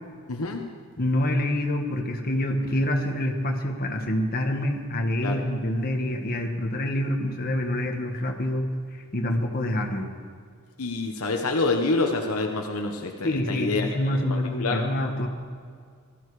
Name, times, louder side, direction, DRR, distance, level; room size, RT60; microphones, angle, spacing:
voice 1, 0.3-0.6 5.2-5.4 10.8-14.8, left 3 dB, 70° left, 3 dB, 1.2 m, -27 dB
voice 2, 1.0-8.7 8.9-10.1 13.2-15.3, left 1 dB, 45° left, 2 dB, 1.6 m, -26 dB
19.5 x 13.5 x 4.9 m, 2.1 s
head